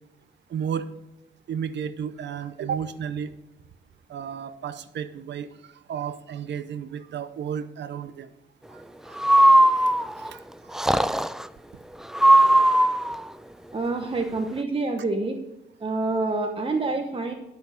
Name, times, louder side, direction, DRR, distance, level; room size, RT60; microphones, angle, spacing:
voice 1, 0.5-0.9 1.5-3.4 4.1-5.5 5.9-8.3 8.7-8.8 9.1-9.2 10.2-10.4 11.1-11.2, right 8 dB, 75° right, 13 dB, 0.7 m, -32 dB
Breathing, 9.2-10.3 10.7-11.4 12.1-13.2, right 1 dB, 5° right, 0.3 m, -18 dB
voice 2, 13.7-15.4 15.8-17.3, right 3 dB, 30° right, 4 dB, 1.0 m, -27 dB
11.0 x 6.4 x 5.1 m, 0.94 s
cardioid pair, 90°, 19 cm